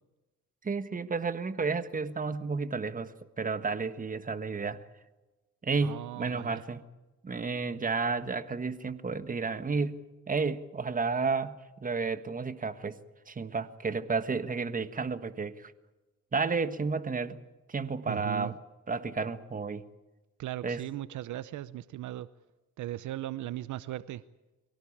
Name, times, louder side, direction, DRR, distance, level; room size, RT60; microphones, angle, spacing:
voice 1, 0.6-4.8 5.6-6.8 7.2-10.0 10.3-13.0 13.3-15.7 16.3-17.4 17.7-18.6 18.9-19.8 20.6-20.8, right 4 dB, 25° right, 11 dB, 1.5 m, -32 dB
voice 2, 5.8-6.6 18.1-18.5 20.4-22.3 22.8-24.2, right 14 dB, 75° right, 16 dB, 0.8 m, -38 dB
23.5 x 17.5 x 8.7 m, 1.1 s
cardioid pair, 90°, 30 cm